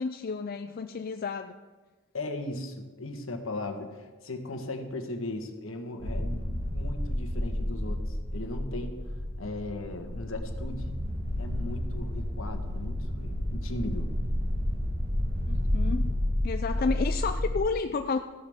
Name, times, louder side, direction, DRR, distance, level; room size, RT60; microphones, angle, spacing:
voice 1, 0.0-1.6 15.5-16.1 16.4-18.2, left 4 dB, 45° left, 8 dB, 0.4 m, -31 dB
voice 2, 2.1-10.9 11.4-14.1, left 2 dB, 70° left, 5 dB, 1.3 m, -38 dB
sound 1, 6.0-17.6, left 1 dB, 55° right, 3.1 m, -31 dB
14.0 x 11.5 x 3.6 m, 1.3 s
head